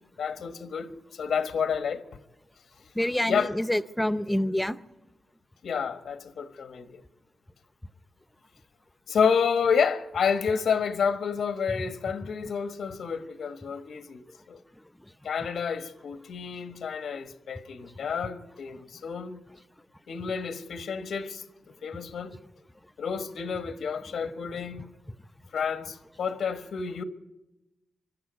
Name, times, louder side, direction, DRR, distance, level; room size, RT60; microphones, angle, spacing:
voice 1, 0.2-2.0 3.3-3.5 5.6-7.0 9.1-14.6 15.2-19.4 20.1-21.4 21.8-22.4 23.0-24.9 25.5-27.0, left 6 dB, 90° left, 1.3 m, -29 dB
voice 2, 2.9-4.8, left 1 dB, 5° left, 0.6 m, -27 dB
24.5 x 12.5 x 9.3 m
wide cardioid pair, 125°, 0 cm